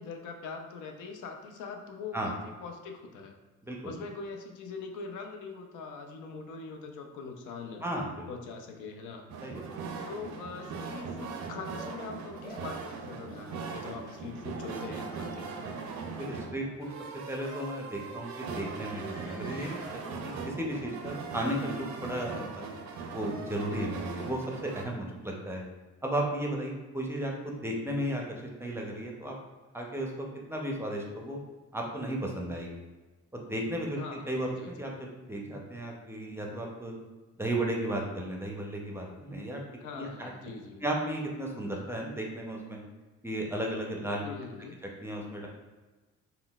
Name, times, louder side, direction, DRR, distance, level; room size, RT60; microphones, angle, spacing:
voice 1, 0.0-3.3 3.8-7.8 8.3-9.3 10.0-15.7 33.9-34.9 39.8-40.8 44.2-44.8, left 4 dB, 85° left, 3 dB, 0.5 m, -42 dB
voice 2, 7.8-8.3 9.4-9.6 16.1-16.9 17.3-22.7 23.1-25.6 26.0-29.3 29.7-31.4 31.7-32.8 33.3-34.0 34.3-36.9 37.4-39.6 40.0-40.3 40.8-42.8 43.2-44.2 45.0-45.5, right 1 dB, 10° right, -1 dB, 0.5 m, -34 dB
sound 1, 9.3-24.8, right 5 dB, 70° right, 0.5 m, -40 dB
sound 2, 10.9-11.1 11.7-11.9 12.4-12.7 13.2-13.5 14.1-14.2 15.2-15.5 16.2-16.4 17.0-17.1 17.6-19.9, equal, 30° left, 1.2 m, -48 dB
3.7 x 2.2 x 2.3 m, 1.2 s
cardioid pair, 90°, 30 cm